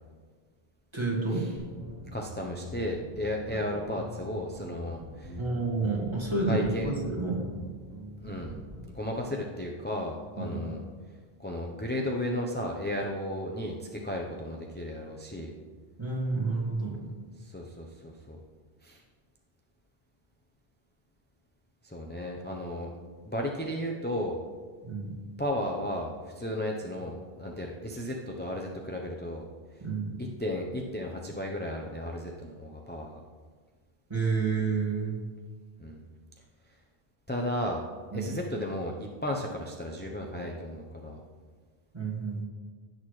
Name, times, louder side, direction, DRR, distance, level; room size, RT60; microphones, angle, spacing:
voice 1, 0.9-1.5 5.4-6.7 7.0-7.4 10.4-10.6 16.0-17.0 24.8-25.1 29.8-30.2 34.1-35.2 38.1-38.3 41.9-42.4, right 4 dB, 25° right, -3 dB, 1.9 m, -29 dB
sound 1, 1.6-8.9, equal, 65° right, 1.8 m, -44 dB
voice 2, 2.1-5.4 6.5-6.9 8.2-8.6 8.9-10.8 11.4-15.5 17.4-18.4 18.8-19.0 21.8-22.9 23.2-24.4 25.4-29.4 30.2-33.2 35.8-36.0 37.3-37.8 38.1-41.2, left 1 dB, 10° left, -1 dB, 0.7 m, -34 dB
16.0 x 6.5 x 3.2 m, 1.5 s
omnidirectional pair, 1.0 m